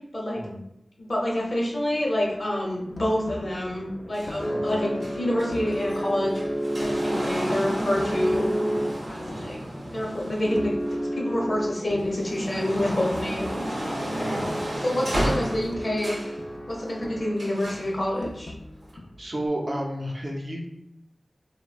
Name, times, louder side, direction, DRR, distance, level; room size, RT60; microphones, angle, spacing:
voice 1, 1.1-6.4 6.8-8.5 9.1-9.6 9.9-14.3 14.8-16.2 16.7-18.5, left 1 dB, 50° left, -3 dB, 0.8 m, -27 dB
sound 1, 1.6-17.8, equal, 5° left, 0.5 m, -33 dB
sound 2, 2.9-5.9 6.2-7.2 7.4-9.7 10.0-11.0 11.3-14.9 15.2-17.3 17.6-19.5, left 2 dB, 75° left, 0.3 m, -43 dB
sound 3, 4.1-11.3 11.8-16.4 17.4-17.9 18.8-18.9, equal, 85° right, 0.7 m, -33 dB
voice 2, 14.1-14.6 15.0-15.2 19.2-20.7, right 1 dB, 45° right, -2 dB, 0.5 m, -32 dB
3.1 x 2.1 x 2.4 m, 0.84 s
wide cardioid pair, 65°, 0 cm